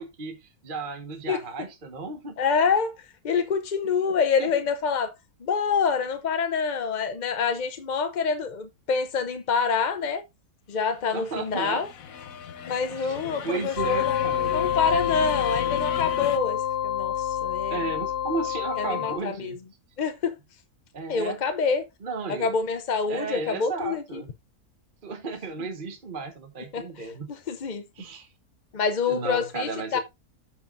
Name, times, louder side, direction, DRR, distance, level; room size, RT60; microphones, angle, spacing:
voice 1, 0.0-2.4 3.8-3.9 4.4-4.5 11.1-11.8 12.9-14.7 17.7-19.6 20.9-21.4 22.0-22.5 23.1-24.3 25.0-27.3 28.0-28.3 29.1-30.0, right 4 dB, 35° right, 1.2 m, -34 dB
voice 2, 2.4-2.9 3.2-5.1 5.4-10.2 10.7-11.9 12.7-17.8 18.8-19.6 20.0-20.3 21.1-21.9 22.3-24.2 26.7-27.8 28.7-30.0, left 5 dB, 45° left, 0.6 m, -26 dB
sound 1, 10.9-16.4, left 8 dB, 65° left, 1.3 m, -39 dB
sound 2, 13.8-19.2, left 10 dB, 90° left, 2.1 m, -27 dB
14.0 x 5.2 x 2.5 m
omnidirectional pair, 1.6 m